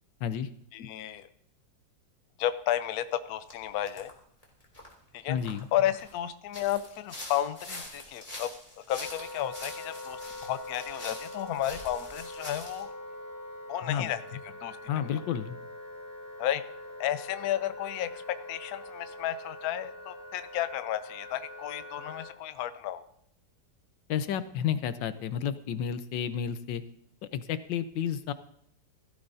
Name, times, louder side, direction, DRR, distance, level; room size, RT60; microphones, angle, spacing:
voice 1, 0.7-1.3 2.4-4.1 5.1-5.4 5.7-8.5 8.9-12.9 13.7-14.8 16.4-16.6 17.0-23.0, left 12 dB, 65° left, 11 dB, 1.0 m, -32 dB
sound 1, 3.5-3.6 3.9-4.1 4.4-6.2 6.5-12.8, left 1 dB, 20° left, 2.6 m, -44 dB
voice 2, 5.3-5.6 13.8-14.1 14.9-15.6 24.1-26.8 27.3-28.3, left 9 dB, 80° left, 12 dB, 1.4 m, -31 dB
Wind instrument woodwind instrument, 9.0-22.4, left 1 dB, 80° right, 4.0 m, -44 dB
16.0 x 13.0 x 2.7 m, 0.71 s
omnidirectional pair, 2.0 m